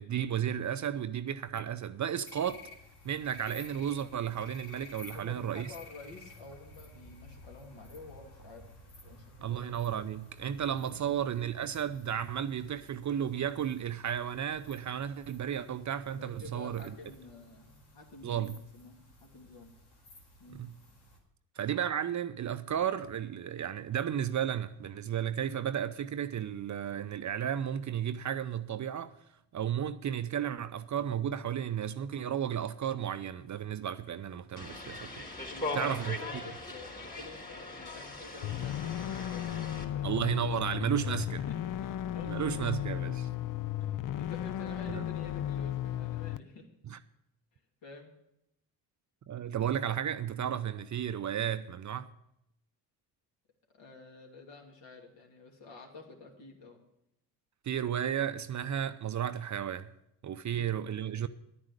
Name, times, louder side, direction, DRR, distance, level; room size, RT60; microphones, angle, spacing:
voice 1, 0.0-2.6 3.0-5.7 9.4-16.9 18.2-18.6 20.5-20.7 21.6-29.1 29.5-36.2 40.0-41.4 42.2-43.3 44.9-45.0 46.9-47.0 49.3-52.1 57.6-59.9 60.2-61.3, right 9 dB, 35° right, 0.6 m, -33 dB
sound 1, 2.2-21.2, left 2 dB, 90° left, 2.3 m, -54 dB
voice 2, 5.1-8.7 9.0-9.6 10.9-11.2 16.1-19.7 20.4-20.7 35.5-40.1 40.6-40.7 41.1-42.6 43.8-46.7 47.8-48.1 53.7-56.8 60.5-60.7, left 3 dB, 60° left, 2.8 m, -49 dB
sound 2, 34.6-39.8, left 2 dB, 20° left, 3.5 m, -40 dB
sound 3, 38.4-46.4, left 12 dB, 45° left, 0.5 m, -35 dB
10.5 x 9.4 x 6.6 m
hypercardioid pair, 50°, 48 cm